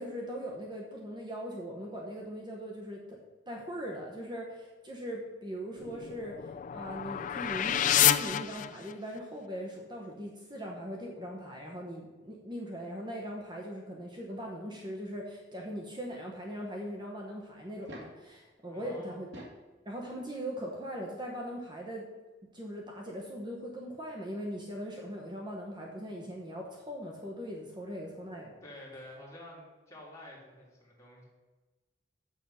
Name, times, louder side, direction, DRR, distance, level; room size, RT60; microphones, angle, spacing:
voice 1, 0.0-3.2 3.5-6.4 6.7-19.3 19.8-22.1 22.5-28.5, equal, 25° right, -1 dB, 1.0 m, -40 dB
sound 1, 5.8-9.2, left 11 dB, 45° left, 0.3 m, -29 dB
sound 2, 17.7-18.3 19.1-19.7 21.0-21.1 22.9-23.0 23.2-23.3, equal, 80° right, 2.1 m, -47 dB
voice 2, 18.7-19.2 28.6-31.2, left 1 dB, 15° left, -5 dB, 2.8 m, -49 dB
7.5 x 6.4 x 5.5 m, 1.2 s
head